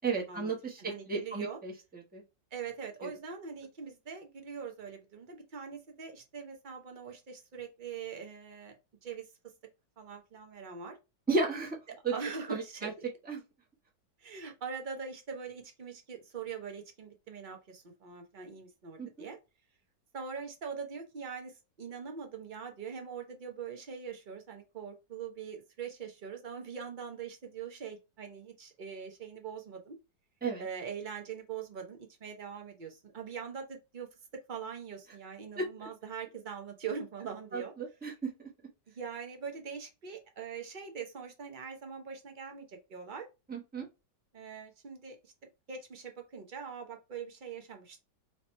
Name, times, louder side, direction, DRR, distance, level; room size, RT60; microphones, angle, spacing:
voice 1, 0.0-2.2 3.0-3.1 11.3-11.8 12.0-12.1 12.5-12.9 13.3-13.4 19.0-19.3 30.4-30.6 35.6-35.7 37.5-38.5 43.5-43.9, right 4 dB, 10° right, 0.7 m, -34 dB
voice 2, 0.8-1.6 2.5-8.8 9.0-9.3 10.0-11.0 11.9-13.0 14.2-19.4 20.1-30.0 30.6-37.7 38.9-43.3 44.3-48.0, right 6 dB, 55° right, 0.5 m, -42 dB
3.2 x 2.9 x 4.2 m
omnidirectional pair, 2.0 m